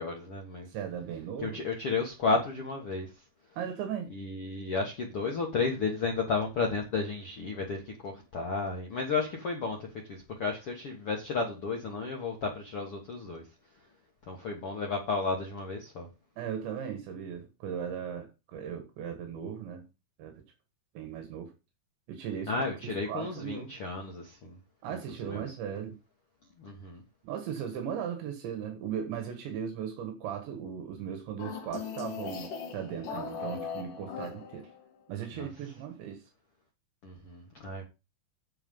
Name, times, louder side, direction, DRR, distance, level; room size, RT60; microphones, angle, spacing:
voice 1, 0.0-0.7 1.4-3.1 4.1-13.4 14.3-16.1 22.5-24.6 24.9-25.0 25.2-25.4 26.6-27.0 35.3-35.5 37.0-37.8, left 4 dB, 85° left, 1.2 m, -33 dB
voice 2, 0.7-1.6 3.6-4.1 16.4-19.9 20.2-20.4 21.0-21.5 22.1-23.7 24.8-26.0 27.2-34.7 35.1-36.3, right 8 dB, 75° right, 3.6 m, -37 dB
sound 1, 31.4-34.9, left 6 dB, 55° left, 2.9 m, -39 dB
9.1 x 6.6 x 5.4 m
omnidirectional pair, 5.3 m